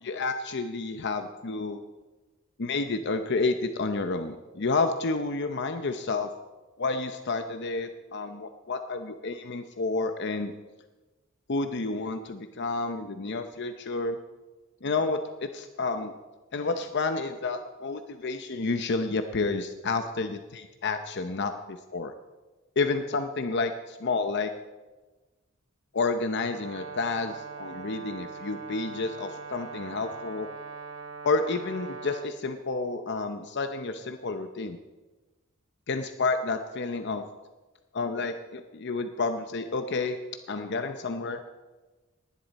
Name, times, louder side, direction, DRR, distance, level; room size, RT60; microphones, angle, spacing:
voice 1, 0.0-1.8 2.6-6.3 6.8-10.5 11.5-14.2 14.8-16.2 16.5-22.1 22.8-24.5 25.9-30.5 31.2-34.8 35.9-37.2 37.9-40.2 40.5-41.5, left 3 dB, 55° left, 8 dB, 0.7 m, -30 dB
Brass instrument, 26.5-32.3, right 4 dB, 75° right, 1.2 m, -41 dB
19.5 x 11.5 x 4.2 m, 1.2 s
head